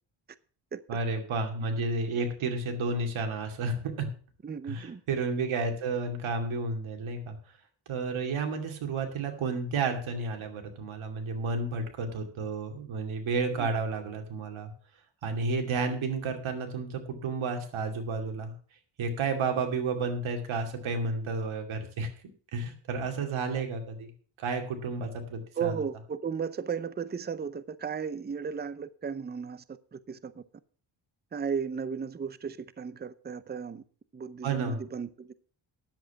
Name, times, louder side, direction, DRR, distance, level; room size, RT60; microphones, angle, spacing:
voice 1, 0.9-4.1 4.7-7.4 7.9-14.7 15.2-18.5 19.0-22.1 22.5-24.1 24.4-25.8 34.4-34.8, right 3 dB, 80° right, 2.6 m, -31 dB
voice 2, 4.4-5.0 13.6-13.7 25.6-29.6 29.9-30.4 31.3-33.8 34.1-35.3, right 6 dB, 20° right, 0.6 m, -35 dB
10.5 x 7.8 x 5.9 m
cardioid pair, 90°, 48 cm